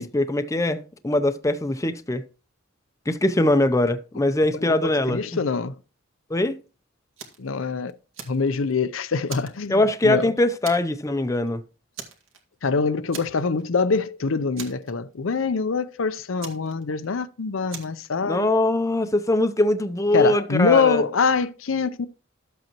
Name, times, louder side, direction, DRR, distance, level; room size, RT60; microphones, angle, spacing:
voice 1, 0.0-2.2 3.1-5.2 6.3-6.6 9.7-11.6 18.2-21.0, left 1 dB, 15° left, 0.6 m, -22 dB
voice 2, 4.7-5.7 7.4-7.9 8.3-10.3 12.6-18.5 20.1-22.1, left 5 dB, 80° left, 0.6 m, -24 dB
Fire, 7.2-7.5 7.9-8.8 9.3-10.2 10.6-11.1 11.3-11.5 11.9-12.7 13.1-13.7 14.0-14.1 14.6-15.4 16.4-17.2 17.7-18.1, right 6 dB, 85° right, 2.1 m, -40 dB
12.5 x 7.8 x 3.0 m
head